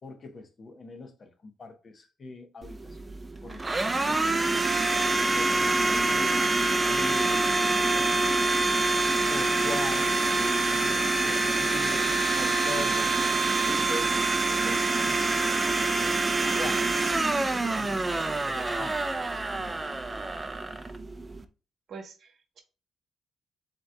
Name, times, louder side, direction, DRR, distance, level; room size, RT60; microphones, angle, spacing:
voice 1, 0.0-4.5 5.0-6.4 6.9-8.4 9.3-16.8 17.5-19.8, left 3 dB, 40° left, 0.9 m, -42 dB
Domestic sounds home sounds, 2.6-21.4, right 3 dB, 20° right, 0.5 m, -26 dB
voice 2, 5.6-6.3 21.9-22.6, right 4 dB, 60° right, 1.0 m, -45 dB
7.5 x 2.9 x 2.2 m
cardioid pair, 90°, 0 cm